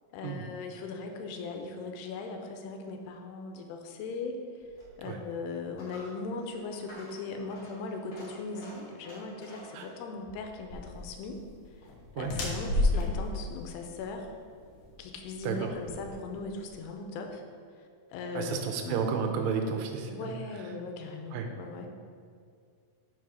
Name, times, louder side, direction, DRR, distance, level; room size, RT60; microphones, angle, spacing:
voice 1, 0.1-4.4 5.0-11.4 11.8-11.9 12.2-14.3 15.0-17.4 18.1-19.1 20.1-21.9, left 3 dB, 90° left, 4 dB, 2.7 m, -39 dB
Coin (dropping), 4.6-12.1, equal, 50° left, 1.2 m, -51 dB
sound 1, 10.7-16.8, left 2 dB, 70° left, 1.8 m, -33 dB
voice 2, 18.4-20.4 21.3-21.5, right 6 dB, 85° right, 5 dB, 2.6 m, -32 dB
6.0 x 4.9 x 6.1 m, 2.3 s
omnidirectional pair, 4.6 m